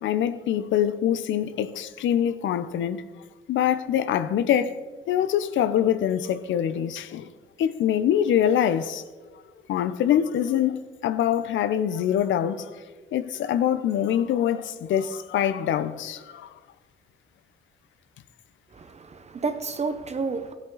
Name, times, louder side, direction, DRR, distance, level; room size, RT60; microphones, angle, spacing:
voice 1, 0.0-3.0 3.5-4.8 5.1-7.3 7.6-9.0 9.7-12.8 13.1-16.5, left 10 dB, 75° left, 0.6 m, -24 dB
voice 2, 18.7-20.5, right 4 dB, 35° right, 0.8 m, -30 dB
14.0 x 8.2 x 3.9 m
cardioid pair, 90°, 20 cm